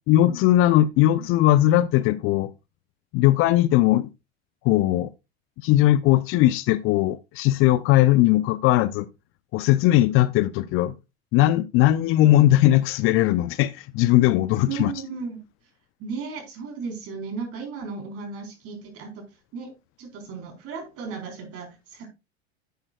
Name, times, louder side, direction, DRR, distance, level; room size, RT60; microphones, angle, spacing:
voice 1, 0.1-2.5 3.1-4.1 4.6-5.1 5.6-9.1 9.5-10.9 11.3-14.9, left 14 dB, 40° left, 0.6 m, -19 dB
voice 2, 14.7-15.4 16.0-19.2 19.5-19.7 20.0-22.1, right 5 dB, 45° right, 4.1 m, -35 dB
10.5 x 8.8 x 2.3 m
hypercardioid pair, 90°, 32 cm